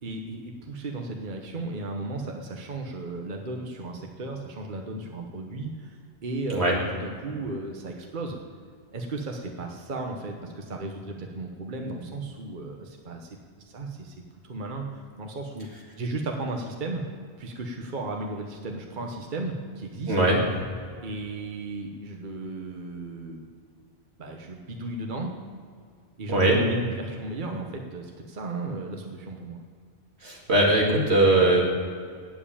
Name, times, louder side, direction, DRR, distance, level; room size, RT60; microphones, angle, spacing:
voice 1, 0.0-8.4 8.9-13.4 13.7-14.1 14.4-15.7 16.0-17.0 17.4-20.1 21.0-23.4 24.2-25.3 26.2-29.6, right 2 dB, 50° right, 2 dB, 1.2 m, -35 dB
voice 2, 20.1-20.4 26.3-26.6 30.2-31.6, right 1 dB, 85° right, -2 dB, 2.5 m, -20 dB
9.5 x 7.3 x 8.7 m, 2.1 s
omnidirectional pair, 1.1 m